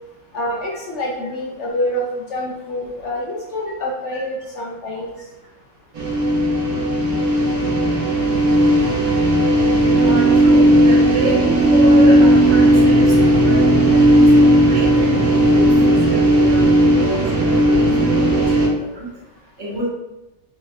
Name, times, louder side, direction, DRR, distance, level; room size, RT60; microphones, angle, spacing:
voice 1, 0.3-5.2, left 1 dB, 65° left, -1 dB, 0.8 m, -26 dB
sound 1, 5.9-18.7, right 1 dB, 85° right, 1.3 m, -14 dB
voice 2, 10.0-16.6 17.0-17.9 18.1-19.1 19.6-19.9, right 2 dB, 55° right, -5 dB, 1.2 m, -27 dB
3.3 x 3.0 x 2.3 m, 0.97 s
omnidirectional pair, 1.5 m